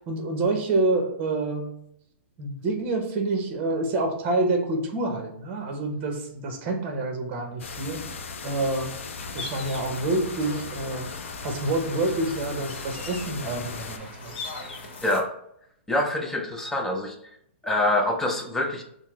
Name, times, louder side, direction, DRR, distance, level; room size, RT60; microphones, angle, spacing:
voice 1, 0.0-1.7 2.4-8.1 8.4-9.0 9.3-11.1 11.4-14.4, right 2 dB, 30° right, 3 dB, 0.8 m, -27 dB
sound 1, 7.6-14.0, left 5 dB, 85° left, 0.5 m, -37 dB
sound 2, 9.2-15.2, left 3 dB, 55° left, 1.0 m, -40 dB
voice 2, 15.0-15.3 15.9-17.2 17.6-18.8, left 1 dB, 5° left, 2 dB, 0.4 m, -25 dB
5.5 x 2.1 x 3.1 m, 0.73 s
hypercardioid pair, 150°, 7 cm